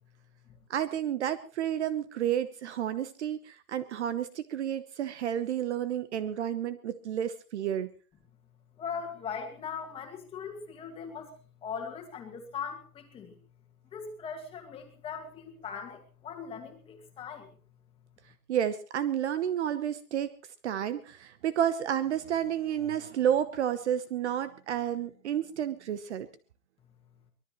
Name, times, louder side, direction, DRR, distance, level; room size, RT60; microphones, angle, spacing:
voice 1, 0.7-7.9 18.5-20.3 20.6-26.3, right 10 dB, 45° right, 14 dB, 1.0 m, -31 dB
voice 2, 8.8-11.3 11.6-13.4 13.9-17.5, left 6 dB, 10° left, 3 dB, 2.0 m, -40 dB
24.0 x 19.0 x 3.1 m, 0.36 s
hypercardioid pair, 165°, 47 cm